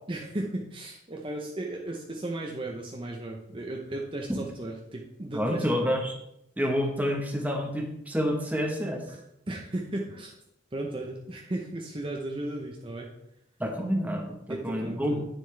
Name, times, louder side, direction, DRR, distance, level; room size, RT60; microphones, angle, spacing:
voice 1, 0.1-5.9 9.5-10.3 10.7-13.1 14.5-15.2, right 1 dB, 30° right, 0 dB, 0.7 m, -35 dB
voice 2, 5.3-6.1 6.6-9.0 13.6-14.4 14.6-15.2, equal, 10° right, 2 dB, 1.0 m, -28 dB
9.2 x 6.7 x 3.3 m, 0.81 s
head